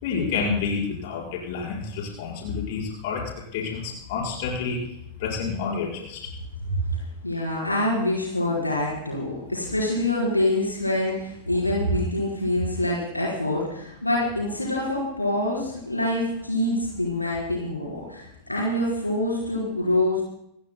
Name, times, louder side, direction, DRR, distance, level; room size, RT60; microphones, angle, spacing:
voice 1, 0.0-3.2 3.5-4.8 5.2-6.2, left 5 dB, 50° left, -4 dB, 5.1 m, -29 dB
voice 2, 6.6-20.2, left 1 dB, 85° left, -5 dB, 4.1 m, -26 dB
26.5 x 16.0 x 2.2 m, 0.79 s
figure-of-eight pair, 90°, 0 cm